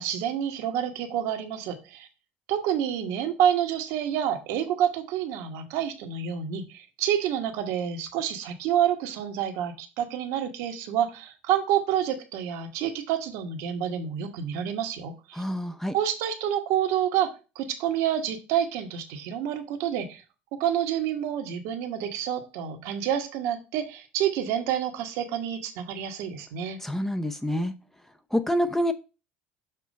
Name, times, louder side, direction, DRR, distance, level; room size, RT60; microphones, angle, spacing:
voice 1, 0.0-2.1 2.5-15.4 15.9-20.2 20.6-26.8, right 10 dB, 65° right, 5 dB, 1.0 m, -28 dB
voice 2, 15.3-16.0 26.8-27.7 28.3-28.9, equal, 5° left, 9 dB, 0.6 m, -27 dB
6.7 x 3.0 x 5.1 m, 0.31 s
hypercardioid pair, 70°, 6 cm